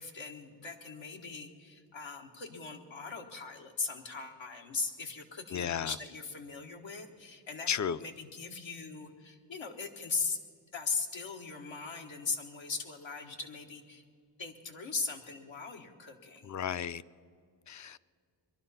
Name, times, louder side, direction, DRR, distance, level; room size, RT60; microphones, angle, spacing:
voice 1, 0.0-10.4 10.7-14.0 14.4-16.6, left 4 dB, 90° left, 1.5 m, -39 dB
voice 2, 5.5-5.9 7.7-8.0 16.4-17.0 17.7-18.1, left 8 dB, 45° left, 0.4 m, -33 dB
21.5 x 12.0 x 5.6 m
wide cardioid pair, 70°, 44 cm